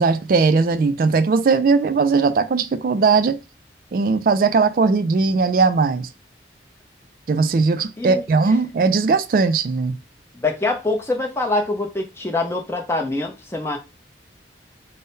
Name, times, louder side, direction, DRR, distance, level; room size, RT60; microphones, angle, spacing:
voice 1, 0.0-3.4 3.9-6.1 7.3-10.0, right 4 dB, 50° right, 0.3 m, -18 dB
voice 2, 10.3-13.8, left 2 dB, 15° left, 0.6 m, -24 dB
3.7 x 2.1 x 3.9 m
head